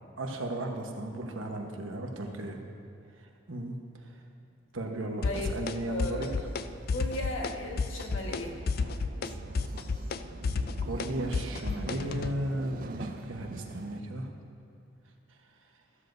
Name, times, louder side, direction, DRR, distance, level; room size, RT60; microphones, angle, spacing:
voice 1, 0.2-2.6 3.5-3.8 4.7-6.3 10.9-14.3, right 1 dB, 85° right, 2 dB, 1.2 m, -35 dB
voice 2, 2.2-2.5 5.2-5.5 5.8-6.4 6.9-8.5, left 1 dB, 90° left, 0 dB, 1.5 m, -36 dB
sound 1, 5.2-5.7 6.0-6.6 6.9-7.5 7.8-8.4 8.7-12.3, left 4 dB, 50° left, 0.4 m, -31 dB
sound 2, 5.9-14.0, right 3 dB, 45° right, 0.4 m, -45 dB
14.0 x 12.5 x 2.7 m, 2.7 s
head